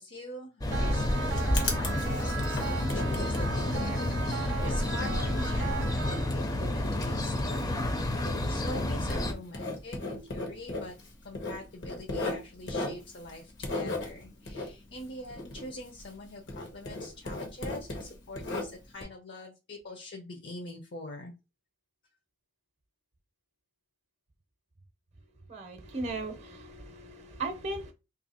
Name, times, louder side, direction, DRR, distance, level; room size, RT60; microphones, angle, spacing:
voice 1, 0.0-11.0 11.2-21.3, left 2 dB, 65° left, 0.7 m, -45 dB
sound 1, 0.6-9.3, left 1 dB, 20° left, 0.5 m, -30 dB
sound 2, 0.7-6.7, right 6 dB, 85° right, 0.4 m, -38 dB
Writing, 0.9-16.2 16.5-19.0, left 2 dB, 85° left, 1.1 m, -37 dB
voice 2, 25.5-27.9, right 2 dB, 35° right, 0.6 m, -37 dB
2.8 x 2.6 x 4.1 m
head